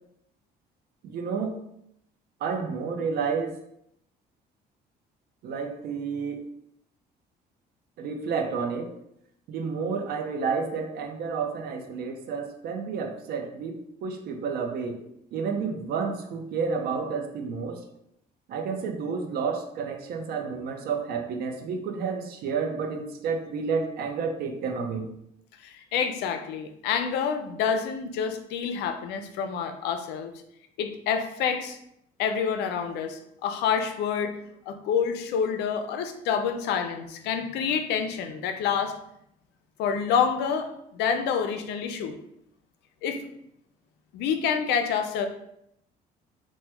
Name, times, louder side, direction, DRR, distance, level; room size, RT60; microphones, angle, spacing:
voice 1, 1.0-1.5 2.4-3.5 5.4-6.4 8.0-8.9 9.5-15.0 15.3-17.8 18.5-25.1, right 5 dB, 70° right, 4 dB, 0.5 m, -30 dB
voice 2, 25.6-30.3 30.8-31.8 32.2-34.4 34.7-38.9 39.8-42.1 43.0-43.2 44.1-45.3, left 7 dB, 80° left, 7 dB, 0.4 m, -27 dB
3.0 x 2.1 x 3.3 m, 0.76 s
cardioid pair, 110°, 17 cm